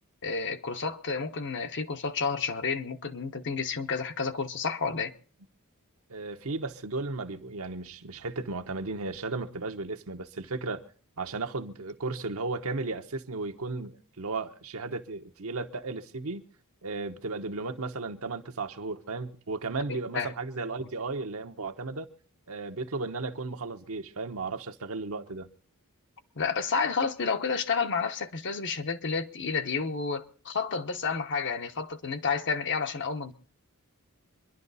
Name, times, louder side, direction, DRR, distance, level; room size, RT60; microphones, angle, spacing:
voice 1, 0.2-5.1 19.9-20.3 20.8-20.9 26.4-33.3, left 5 dB, 55° left, 1.0 m, -30 dB
voice 2, 6.1-10.8 11.2-16.5 16.8-22.1 22.5-25.5, right 3 dB, 70° right, 1.1 m, -35 dB
25.5 x 11.0 x 4.1 m
head